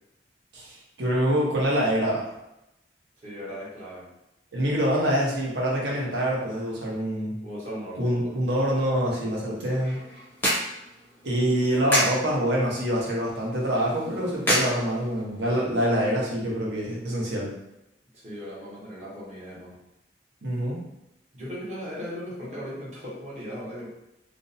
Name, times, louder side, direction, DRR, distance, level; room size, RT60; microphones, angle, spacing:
voice 1, 0.5-2.3 4.5-7.3 8.0-10.0 11.2-17.5 20.4-20.8, equal, 70° right, -3 dB, 0.7 m, -25 dB
voice 2, 3.2-4.1 7.4-8.4 18.1-19.8 21.3-23.9, equal, 40° right, -7 dB, 0.8 m, -37 dB
sound 1, 9.5-15.5, equal, 10° left, 0.5 m, -31 dB
2.5 x 2.0 x 2.6 m, 0.89 s
head